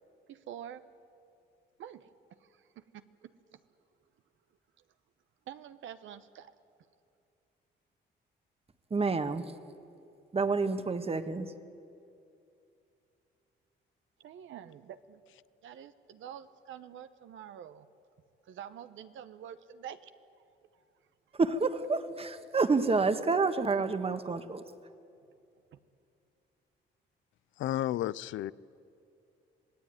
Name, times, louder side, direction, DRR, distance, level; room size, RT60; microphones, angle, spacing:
voice 1, 0.3-0.8 1.8-2.1 2.4-3.6 5.5-6.5 14.2-15.2 15.6-17.9 18.4-20.1 20.7-20.9 25.7-25.8, right 10 dB, 80° right, 11 dB, 1.1 m, -47 dB
voice 2, 8.9-9.5 10.3-11.5 21.3-24.6, right 4 dB, 30° right, 10 dB, 1.5 m, -29 dB
voice 3, 27.6-28.5, left 13 dB, 75° left, 20 dB, 0.6 m, -32 dB
26.5 x 18.0 x 9.3 m, 2.6 s
cardioid pair, 90°, 20 cm